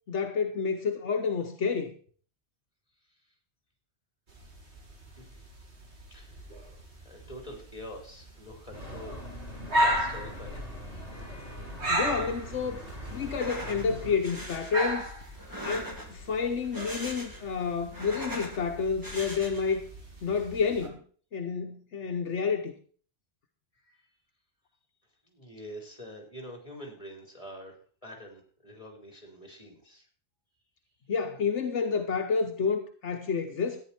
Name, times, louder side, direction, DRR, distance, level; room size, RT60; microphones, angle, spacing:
voice 1, 0.1-1.9 11.9-12.8 13.1-15.1 15.6-19.8 20.2-21.0 21.3-22.7 31.1-33.8, left 5 dB, 80° left, 1.4 m, -29 dB
sound 1, 4.3-20.9, equal, 70° right, 2.8 m, -36 dB
voice 2, 6.1-6.6 7.0-9.2 9.6-10.6 23.8-24.0 25.3-27.7 28.0-30.1, equal, 30° left, 4.4 m, -45 dB
sound 2, 8.7-14.2, left 1 dB, 55° right, 8.1 m, -42 dB
sound 3, 13.2-13.9 14.2-14.7 15.4-16.2 16.6-17.5 17.8-18.6 19.0-19.8, equal, 15° right, 2.5 m, -40 dB
14.0 x 9.9 x 4.4 m
omnidirectional pair, 1.2 m